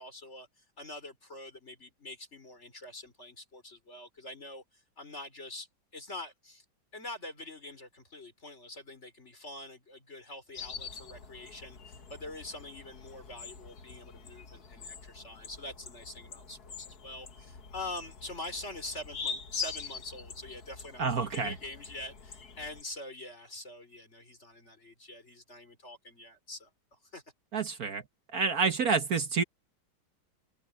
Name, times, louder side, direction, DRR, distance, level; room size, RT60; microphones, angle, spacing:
voice 1, 0.0-5.7 5.9-6.7 6.9-27.2, left 2 dB, 35° left, 5.3 m, -45 dB
sound 1, 10.5-22.8, left 6 dB, 55° left, 2.1 m, -44 dB
voice 2, 21.0-21.5 27.5-28.0 28.3-29.4, right 5 dB, 55° right, 1.6 m, -28 dB
omnidirectional pair, 2.1 m